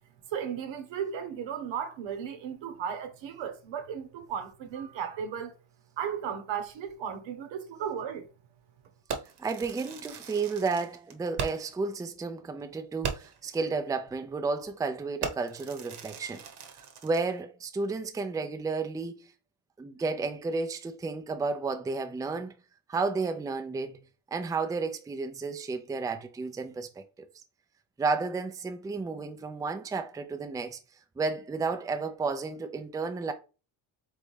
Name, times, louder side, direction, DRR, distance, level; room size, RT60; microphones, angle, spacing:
voice 1, 0.3-5.5 6.0-8.3, right 8 dB, 85° right, 1.0 m, -35 dB
Fireworks, 9.1-11.8 12.2-12.3 12.6-12.7 13.0-13.5 14.1-14.3 14.6-14.8 15.2-17.3, right 6 dB, 60° right, 1.0 m, -38 dB
voice 2, 9.4-16.4 17.0-19.2 19.8-22.5 22.9-24.0 24.3-27.0 28.0-30.8 31.2-33.3, right 4 dB, 10° right, 0.4 m, -32 dB
4.1 x 3.5 x 3.2 m
cardioid pair, 115°, 45 cm